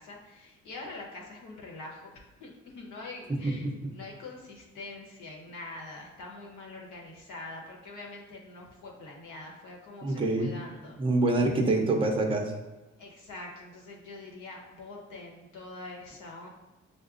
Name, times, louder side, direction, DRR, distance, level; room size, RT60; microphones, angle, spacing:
voice 1, 0.0-11.0 13.0-16.5, left 2 dB, 85° left, -2 dB, 1.0 m, -44 dB
voice 2, 3.4-3.9 10.0-10.5 11.0-12.5, right 2 dB, 15° right, 1 dB, 0.6 m, -26 dB
5.9 x 2.1 x 2.5 m, 1.1 s
cardioid pair, 90°, 30 cm